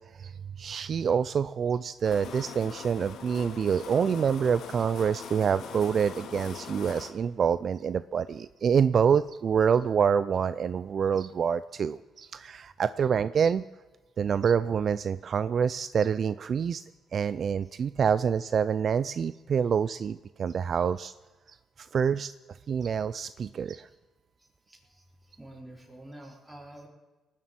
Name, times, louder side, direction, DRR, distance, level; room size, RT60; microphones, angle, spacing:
voice 1, 0.6-13.6 14.2-16.8 17.1-21.1 21.8-22.3 22.7-23.9, right 7 dB, 50° right, 15 dB, 0.4 m, -26 dB
sound 1, 2.0-7.1, left 7 dB, 75° left, 1.7 m, -42 dB
voice 2, 24.7-25.0 25.4-26.9, right 1 dB, 10° right, -1 dB, 4.1 m, -47 dB
19.5 x 7.4 x 8.5 m, 1.2 s
cardioid pair, 90°, 0 cm